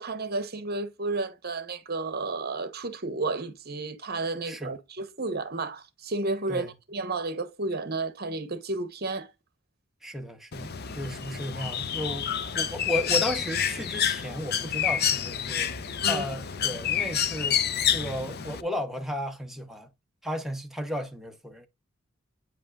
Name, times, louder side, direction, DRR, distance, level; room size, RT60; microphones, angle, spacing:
voice 1, 0.0-9.3 16.0-16.2, right 3 dB, 50° right, 1.1 m, -32 dB
voice 2, 10.0-15.7 16.1-17.6 17.9-19.9 20.2-21.7, equal, ahead, 1.0 m, -34 dB
Bird, 10.5-18.6, left 8 dB, 50° left, 0.7 m, -28 dB
9.0 x 5.2 x 2.5 m
head